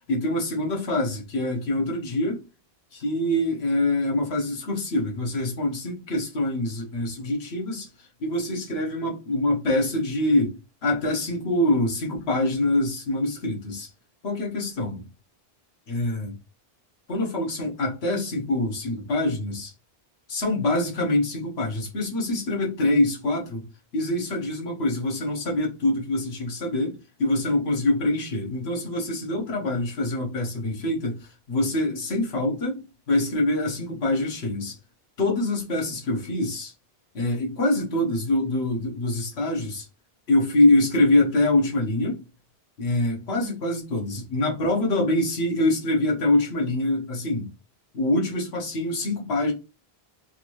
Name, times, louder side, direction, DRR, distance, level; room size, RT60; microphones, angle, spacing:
voice 1, 0.1-2.4 2.9-13.9 14.2-15.0 15.9-16.4 17.1-19.7 20.3-23.7 23.9-34.8 35.2-36.7 37.1-39.9 40.3-42.2 42.8-47.5 47.9-49.5, left 1 dB, 90° left, 1.3 m, -25 dB
3.9 x 3.0 x 2.6 m
omnidirectional pair, 1.0 m